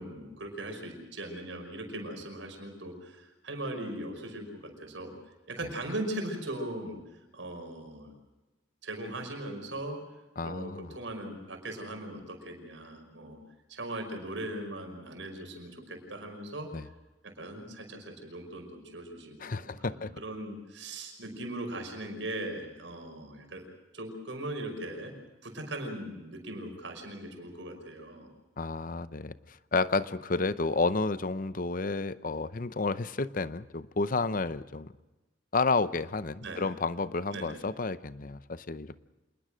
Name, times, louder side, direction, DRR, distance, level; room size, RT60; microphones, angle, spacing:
voice 1, 0.0-5.1 5.5-7.0 7.3-8.1 8.8-10.0 10.4-13.4 13.7-16.7 17.2-23.7 23.9-25.1 25.4-28.3 36.4-36.6 37.3-37.5, right 1 dB, 85° right, 4 dB, 5.6 m, -39 dB
voice 2, 10.4-11.0 16.7-16.9 19.4-20.1 28.6-34.9 35.5-39.0, left 3 dB, 45° left, 15 dB, 0.7 m, -31 dB
27.0 x 20.5 x 6.3 m, 1.1 s
head